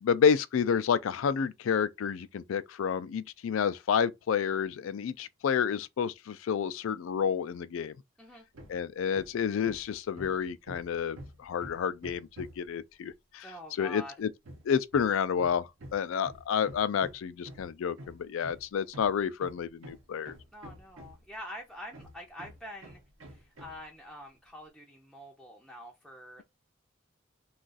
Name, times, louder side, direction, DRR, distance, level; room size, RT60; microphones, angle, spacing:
voice 1, 0.0-7.9 8.7-13.5 13.8-14.3 14.7-20.4, left 7 dB, 75° left, 0.3 m, -30 dB
Hammer, 8.5-8.8 9.1-12.7 14.4-21.4 21.9-23.8, right 1 dB, 75° right, 0.8 m, -48 dB
voice 2, 13.4-14.1 20.5-23.0 23.3-26.4, equal, ahead, 0.5 m, -46 dB
2.4 x 2.4 x 3.8 m
head